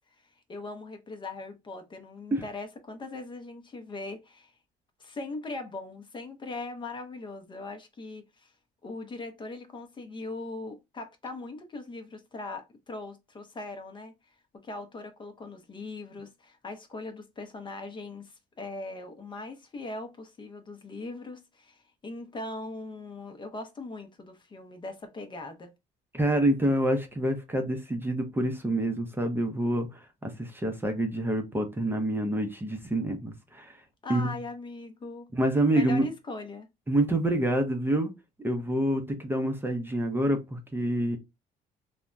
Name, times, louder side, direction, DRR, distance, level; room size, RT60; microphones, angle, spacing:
voice 1, 0.5-4.5 5.0-8.5 8.8-14.1 14.6-25.7 34.0-35.3 35.7-36.7, left 2 dB, 30° left, 0.6 m, -40 dB
voice 2, 26.1-33.8 34.1-34.3 35.3-36.1 36.9-38.1 38.4-41.2, right 1 dB, 15° right, 0.5 m, -27 dB
3.3 x 2.1 x 2.4 m
cardioid pair, 110°, 17 cm